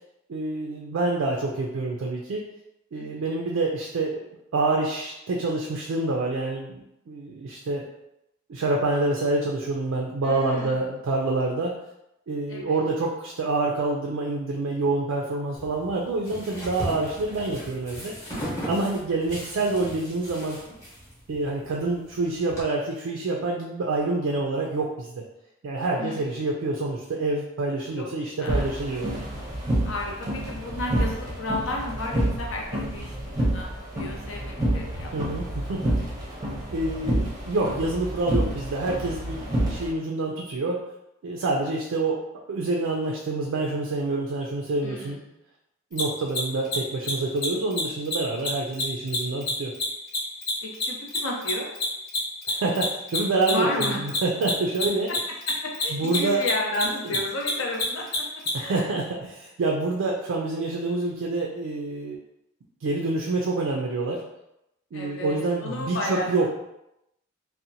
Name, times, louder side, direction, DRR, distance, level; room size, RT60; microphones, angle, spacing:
voice 1, 0.3-2.4 2.9-4.2 4.5-7.8 8.5-11.8 12.3-18.1 18.6-20.6 21.3-25.2 25.6-29.2 35.1-35.9 36.7-40.8 41.2-42.2 42.5-45.2 45.9-49.7 52.5-55.1 55.9-56.4 58.5-62.2 62.8-64.2 64.9-66.5, right 2 dB, 70° right, -1 dB, 0.3 m, -27 dB
voice 2, 10.2-10.8 12.5-12.8 18.7-19.0 26.0-26.5 28.0-28.7 29.8-35.7 44.8-45.4 50.6-51.7 53.5-54.0 55.6-58.0 58.6-59.0 64.9-66.5, left 1 dB, 70° left, -1 dB, 0.6 m, -33 dB
sound 1, 15.6-22.6, equal, 15° left, 0.9 m, -38 dB
sound 2, 28.5-39.9, right 1 dB, 20° right, 0.6 m, -28 dB
Mechanisms, 45.9-46.0 46.3-46.4 46.6-46.8 47.0-47.1 47.4-47.5 47.7-47.8 48.0-48.1 48.4-51.2 51.4-58.5, left 4 dB, 50° left, 0.9 m, -28 dB
2.8 x 2.1 x 2.6 m, 0.86 s
head